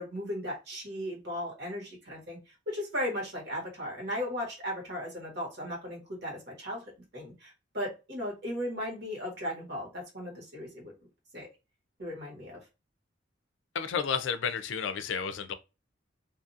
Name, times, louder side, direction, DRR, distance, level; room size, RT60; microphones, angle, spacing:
voice 1, 0.0-6.8 7.1-10.9 11.3-11.5 12.0-12.6, left 1 dB, 60° right, 1.5 m, -36 dB
voice 2, 13.7-15.5, left 6 dB, 75° left, 0.4 m, -31 dB
2.7 x 2.4 x 2.6 m
head